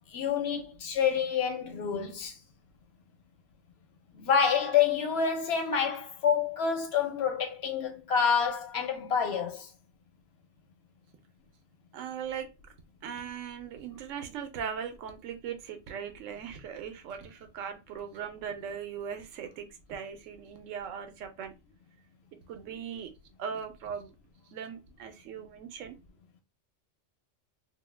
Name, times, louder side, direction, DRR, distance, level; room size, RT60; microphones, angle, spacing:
voice 1, 0.1-2.3 4.1-9.7, left 7 dB, 60° left, 0.9 m, -28 dB
voice 2, 11.9-12.5 13.0-21.5 22.5-23.1 23.4-24.1 24.5-26.0, right 7 dB, 85° right, 0.9 m, -39 dB
2.5 x 2.1 x 3.1 m
omnidirectional pair, 1.3 m